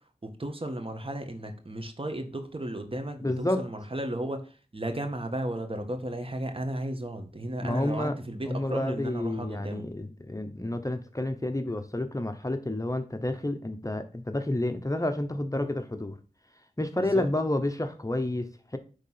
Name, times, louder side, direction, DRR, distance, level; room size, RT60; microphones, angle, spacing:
voice 1, 0.2-9.9 17.1-17.2, right 1 dB, 40° right, 1.7 m, -34 dB
voice 2, 3.2-3.6 7.6-8.2 8.5-16.2 16.8-18.8, left 1 dB, 25° left, 1.0 m, -30 dB
9.6 x 3.8 x 5.8 m
wide cardioid pair, 45°, 14 cm